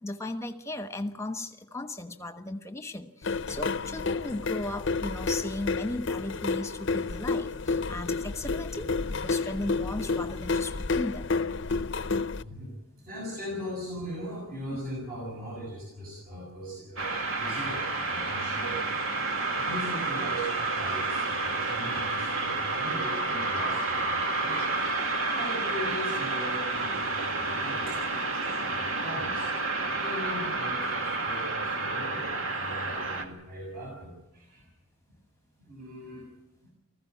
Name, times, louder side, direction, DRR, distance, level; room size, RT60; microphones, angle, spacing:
voice 1, 0.0-8.9 9.2-11.3 14.7-14.8, left 2 dB, 15° left, 8 dB, 1.2 m, -36 dB
sound 1, 3.2-12.4, left 4 dB, 55° left, 0.7 m, -30 dB
voice 2, 12.4-17.1 17.4-18.9 19.5-24.7 25.3-28.1 28.7-29.5 29.9-34.7 35.6-36.3, equal, 45° right, -2 dB, 6.6 m, -39 dB
sound 2, 17.0-33.2, right 3 dB, 70° right, 2.3 m, -30 dB
20.0 x 15.0 x 9.3 m, 0.97 s
head